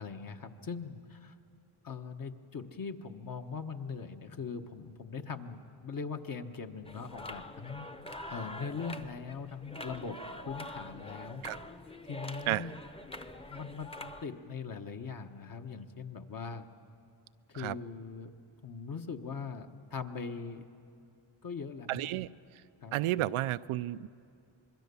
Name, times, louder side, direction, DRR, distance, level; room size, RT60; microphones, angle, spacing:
voice 1, 0.0-1.3 1.8-7.9 8.3-10.2 10.4-11.4 12.0-12.8 13.5-13.9 14.2-16.7 17.5-18.3 18.6-20.7 21.4-22.1 22.8-23.0, left 5 dB, 45° left, 6 dB, 1.4 m, -41 dB
sound 1, 6.8-14.3, left 1 dB, 10° left, 1.0 m, -45 dB
voice 2, 21.9-22.3 22.9-24.1, right 15 dB, 80° right, 15 dB, 0.6 m, -32 dB
26.0 x 21.5 x 7.0 m, 2.5 s
cardioid pair, 85°, 48 cm